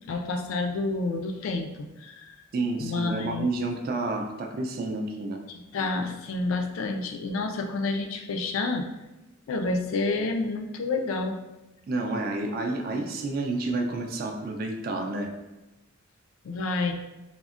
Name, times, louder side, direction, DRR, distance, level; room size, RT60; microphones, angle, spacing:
voice 1, 0.1-2.4 2.8-3.5 5.7-8.9 9.5-11.4 16.4-16.9, left 3 dB, 70° left, 4 dB, 0.3 m, -29 dB
voice 2, 2.5-5.4 11.9-15.3, right 2 dB, 45° right, 3 dB, 0.3 m, -30 dB
3.5 x 2.1 x 2.4 m, 1.0 s
head